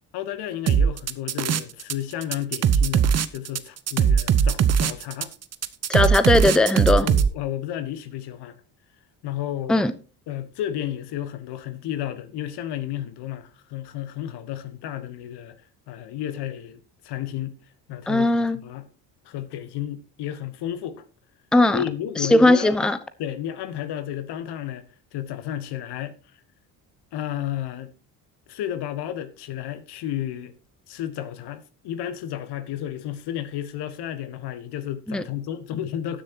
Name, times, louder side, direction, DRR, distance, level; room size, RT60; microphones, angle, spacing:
voice 1, 0.1-5.3 7.0-8.6 9.2-9.8 10.3-15.6 15.9-17.6 17.9-18.9 19.2-21.0 21.7-22.9 23.2-24.8 25.1-26.2 27.1-27.9 28.5-30.5 30.9-36.2, left 11 dB, 60° left, 1.3 m, -32 dB
sound 1, 0.7-1.9 2.2-7.3, right 7 dB, 35° right, 0.9 m, -20 dB
voice 2, 5.9-7.1 9.7-9.9 18.1-18.6 21.5-21.8 22.2-23.0 35.1-35.2, left 2 dB, ahead, 0.7 m, -18 dB
19.0 x 6.6 x 2.9 m
hypercardioid pair, 55°, 44 cm